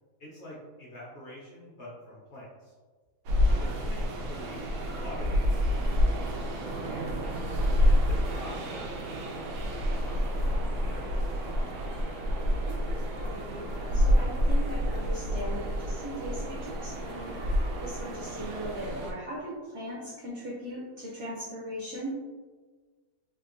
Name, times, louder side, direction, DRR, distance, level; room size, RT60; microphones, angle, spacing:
voice 1, 0.2-2.7 3.5-7.2 7.8-11.4, equal, 55° left, -5 dB, 0.9 m, -47 dB
sound 1, 3.3-19.1, equal, 85° right, 1.2 m, -28 dB
voice 2, 7.5-8.0 12.6-17.4 17.8-22.2, equal, 65° right, -5 dB, 0.7 m, -39 dB
3.6 x 2.5 x 2.5 m, 1.4 s
omnidirectional pair, 1.7 m